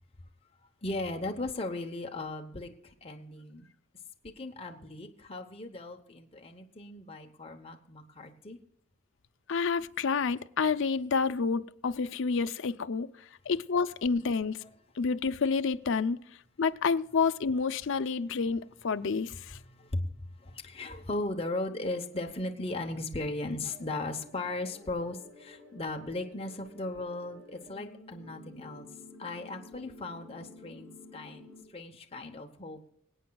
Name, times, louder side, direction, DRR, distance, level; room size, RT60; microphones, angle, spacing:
voice 1, 0.8-3.6 4.2-8.6 14.6-14.7 19.5-28.9 29.2-31.4 31.7-32.9, left 2 dB, 25° left, 0.8 m, -37 dB
voice 2, 9.5-13.1 13.5-14.6 15.0-16.2 16.6-19.6, left 5 dB, 60° left, 0.5 m, -29 dB
sound 1, 23.6-31.6, left 2 dB, 80° right, 3.5 m, -52 dB
25.5 x 8.6 x 2.3 m
head